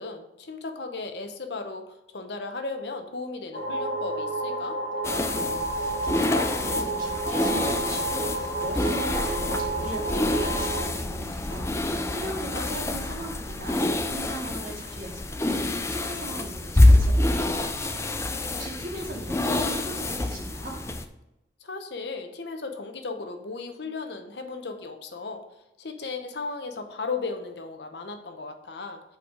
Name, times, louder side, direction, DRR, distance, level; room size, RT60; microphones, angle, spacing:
voice 1, 0.0-4.8 12.4-12.7 21.6-25.4 25.8-29.0, left 4 dB, 65° left, 6 dB, 0.8 m, -36 dB
sound 1, 3.5-10.8, right 2 dB, 45° left, 1.8 m, -30 dB
sound 2, 5.0-21.0, left 1 dB, 15° left, 0.4 m, -26 dB
voice 2, 5.1-20.7, right 1 dB, 45° right, -3 dB, 2.2 m, -39 dB
6.8 x 4.6 x 4.9 m, 0.93 s
head